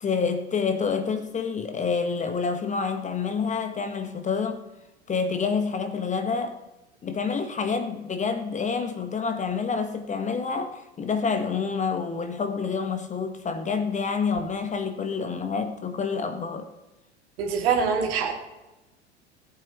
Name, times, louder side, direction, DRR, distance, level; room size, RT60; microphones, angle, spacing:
voice 1, 0.0-4.6 5.1-6.6 7.0-16.7, left 5 dB, 20° left, 1.1 m, -28 dB
voice 2, 17.4-18.3, right 6 dB, 60° right, 2.6 m, -24 dB
18.0 x 8.7 x 3.0 m
figure-of-eight pair, 80°, 34 cm